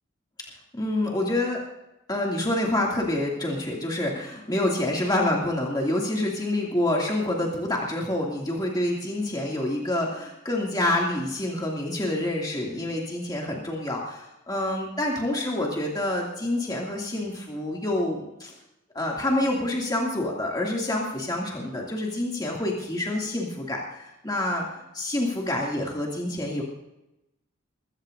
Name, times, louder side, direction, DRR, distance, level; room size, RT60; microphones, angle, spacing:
voice 1, 0.7-1.6 2.1-18.5 18.9-24.6 24.9-26.6, left 1 dB, 20° left, -2 dB, 2.4 m, -27 dB
22.5 x 15.0 x 2.6 m, 0.89 s
head